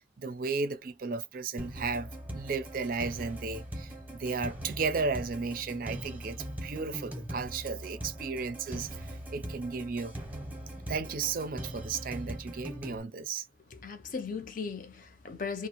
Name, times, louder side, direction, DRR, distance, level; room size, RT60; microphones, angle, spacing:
voice 1, 0.2-10.1 10.9-13.5, right 4 dB, 50° right, 0.4 m, -34 dB
sound 1, 1.6-13.0, equal, 10° right, 0.7 m, -41 dB
voice 2, 13.7-15.7, left 5 dB, 45° left, 0.6 m, -37 dB
2.6 x 2.1 x 2.9 m
head